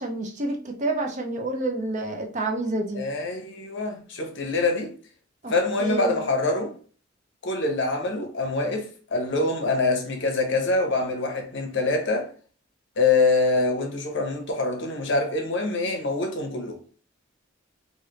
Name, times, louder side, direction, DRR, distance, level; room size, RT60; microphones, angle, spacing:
voice 1, 0.0-3.0 5.4-5.5 5.8-6.2, right 2 dB, 40° right, 0.6 m, -28 dB
voice 2, 2.9-4.9 5.5-6.7 7.4-12.3 13.0-16.8, left 3 dB, 65° left, 0.8 m, -25 dB
3.2 x 2.5 x 3.0 m
head